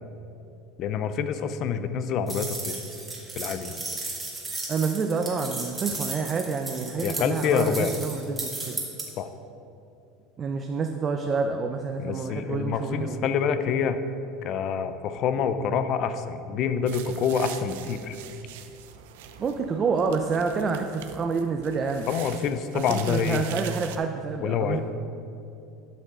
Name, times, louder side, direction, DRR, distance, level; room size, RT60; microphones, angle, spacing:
voice 1, 0.8-2.8 3.4-3.8 7.0-8.0 9.2-9.3 12.0-14.0 14.4-18.2 22.1-23.4 24.4-24.8, left 7 dB, 50° left, 10 dB, 0.5 m, -27 dB
sound 1, 2.3-9.0, right 3 dB, 15° right, 1.7 m, -35 dB
voice 2, 4.7-8.8 10.4-13.3 19.4-22.1 22.7-24.8, right 5 dB, 30° right, 4 dB, 0.4 m, -28 dB
sound 2, 16.9-24.0, right 10 dB, 85° right, 0.6 m, -43 dB
12.0 x 5.5 x 3.7 m, 2.7 s
supercardioid pair, 130°, 0 cm